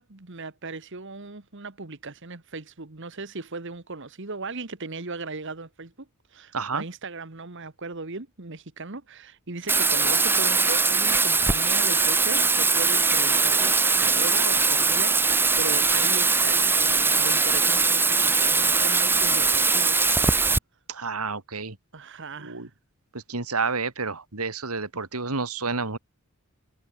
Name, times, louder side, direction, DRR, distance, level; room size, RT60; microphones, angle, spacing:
voice 1, 0.0-20.4 21.9-22.7, right 3 dB, 55° right, 1.5 m, -37 dB
voice 2, 6.5-6.8 20.9-21.8 22.4-22.7 23.1-26.0, right 4 dB, 85° right, 2.6 m, -30 dB
Bathtub (filling or washing), 9.7-20.6, right 4 dB, 10° right, 0.8 m, -21 dB
head